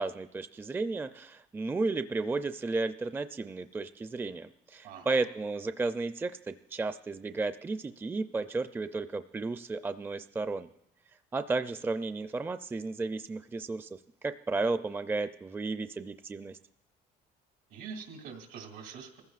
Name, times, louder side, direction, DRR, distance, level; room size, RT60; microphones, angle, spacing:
voice 1, 0.0-10.7 11.3-13.9 14.2-16.6, right 3 dB, 10° right, 10 dB, 0.4 m, -33 dB
voice 2, 4.8-5.2 17.7-19.2, right 6 dB, 85° right, 3 dB, 2.5 m, -44 dB
23.0 x 15.0 x 2.4 m, 0.80 s
cardioid pair, 110°, 17 cm